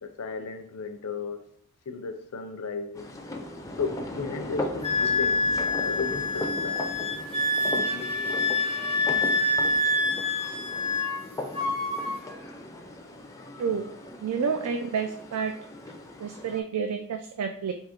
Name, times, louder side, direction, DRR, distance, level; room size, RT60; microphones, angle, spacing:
voice 1, 0.0-1.5 1.9-3.2 3.8-6.9 7.7-8.3 9.3-9.6 13.5-13.7, left 4 dB, 70° left, 6 dB, 0.5 m, -35 dB
sound 1, 2.9-16.6, left 1 dB, 15° left, 0.4 m, -38 dB
Wind instrument woodwind instrument, 4.8-11.2 11.5-12.2, left 2 dB, 25° right, 0.7 m, -26 dB
voice 2, 13.6-13.9 14.2-15.5 16.2-17.7, right 6 dB, 75° right, 6 dB, 0.4 m, -29 dB
3.6 x 2.8 x 4.2 m, 0.66 s
head